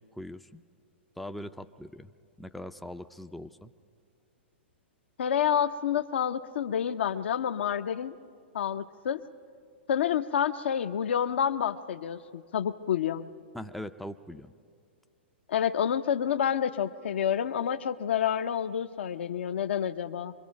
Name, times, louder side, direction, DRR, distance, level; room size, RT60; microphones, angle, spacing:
voice 1, 0.1-0.6 1.2-2.1 2.4-3.7 13.5-14.5, left 1 dB, ahead, 8 dB, 0.4 m, -41 dB
voice 2, 5.2-8.1 8.5-9.2 9.9-13.3 15.5-20.3, left 8 dB, 70° left, 9 dB, 0.7 m, -28 dB
25.5 x 22.0 x 5.2 m, 2.2 s
hypercardioid pair, 120°, 6 cm